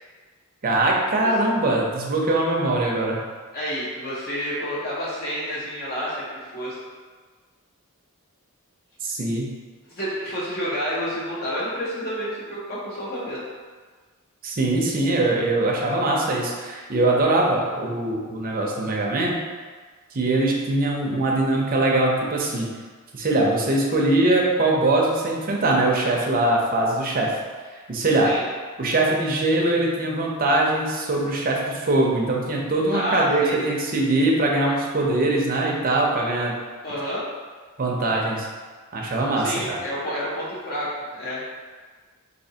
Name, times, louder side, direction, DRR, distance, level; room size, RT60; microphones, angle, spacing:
voice 1, 0.6-3.2 9.0-9.5 14.4-19.3 20.1-22.7 23.1-27.3 27.7-28.3 28.8-36.5 37.8-38.5 38.9-39.8, right 2 dB, 40° right, -2 dB, 0.6 m, -22 dB
voice 2, 3.5-6.8 9.9-13.4 28.2-28.4 32.9-33.6 36.8-37.2 39.4-41.4, equal, 45° left, -6 dB, 0.7 m, -29 dB
4.1 x 2.8 x 2.7 m, 1.5 s
head